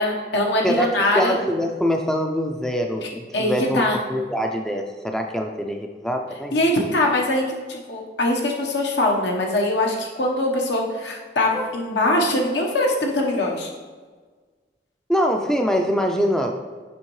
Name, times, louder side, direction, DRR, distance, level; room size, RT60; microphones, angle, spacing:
voice 1, 0.0-1.4 3.0-4.0 6.5-13.7, left 1 dB, 80° left, 0 dB, 1.1 m, -22 dB
voice 2, 1.1-3.8 4.1-6.5 11.5-11.7 15.1-16.6, equal, 5° left, 2 dB, 0.4 m, -24 dB
7.2 x 5.3 x 3.1 m, 1.4 s
head